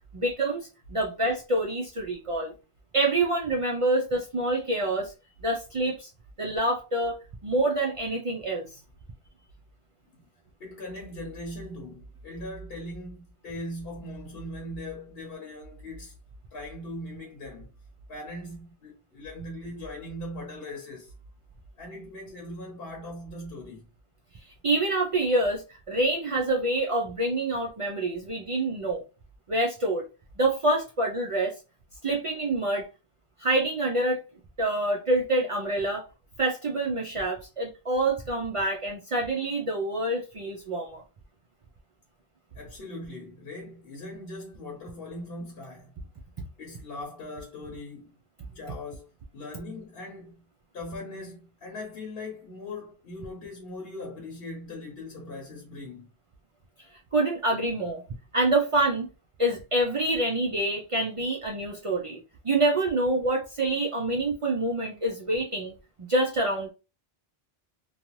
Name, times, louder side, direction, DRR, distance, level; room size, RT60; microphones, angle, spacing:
voice 1, 0.1-2.5 2.9-5.1 5.4-6.1 6.4-7.2 7.4-8.8 24.6-29.0 29.5-30.0 30.4-31.5 32.0-32.9 33.4-34.2 34.6-36.0 36.4-41.0 56.9-58.0 58.3-59.1 59.4-62.2 62.4-66.7, right 2 dB, 55° right, 0.4 m, -26 dB
voice 2, 10.6-16.1 16.5-17.7 18.1-21.1 21.8-23.9 42.5-45.9 46.6-48.2 48.4-50.4 50.7-56.1, left 1 dB, 70° left, 0.9 m, -40 dB
2.6 x 2.2 x 3.0 m
omnidirectional pair, 1.0 m